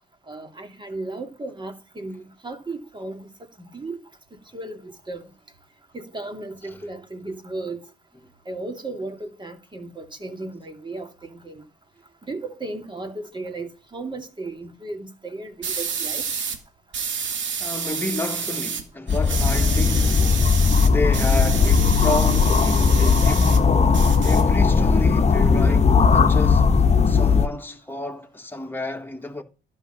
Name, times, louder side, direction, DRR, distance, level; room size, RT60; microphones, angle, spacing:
voice 1, 0.3-3.3 3.6-4.0 4.3-5.3 5.9-7.8 8.5-11.6 12.2-16.4 23.9-24.0, right 2 dB, 25° right, 2.6 m, -35 dB
sound 1, 15.6-16.6 16.9-18.8 19.1-23.6 23.9-24.9, right 6 dB, 70° right, 2.5 m, -29 dB
voice 2, 17.6-20.2 20.8-23.6 24.2-26.7 27.1-29.4, left 2 dB, 10° left, 2.1 m, -31 dB
sound 2, 19.1-27.5, left 5 dB, 35° left, 1.3 m, -18 dB
12.0 x 6.5 x 5.7 m
cardioid pair, 90°, 20 cm